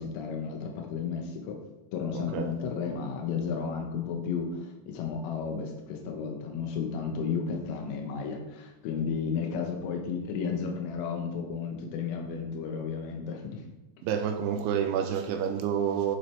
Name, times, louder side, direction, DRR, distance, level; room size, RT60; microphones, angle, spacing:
voice 1, 0.0-1.6 1.9-13.6, left 6 dB, 85° left, 2 dB, 3.7 m, -33 dB
voice 2, 2.1-2.5 14.0-16.2, right 8 dB, 85° right, 6 dB, 2.9 m, -29 dB
11.0 x 7.4 x 3.4 m, 1.0 s
omnidirectional pair, 5.8 m